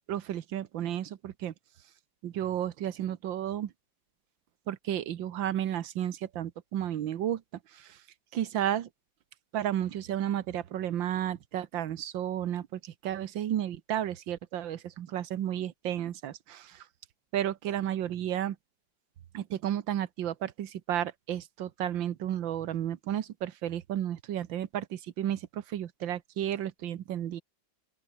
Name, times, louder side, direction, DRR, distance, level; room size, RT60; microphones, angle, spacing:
voice 1, 0.1-1.5 2.2-3.7 4.7-7.4 7.7-8.0 8.3-8.9 9.5-16.9 17.3-18.6 19.3-27.4, right 11 dB, 85° right, 1.8 m, -32 dB
open air
omnidirectional pair, 2.0 m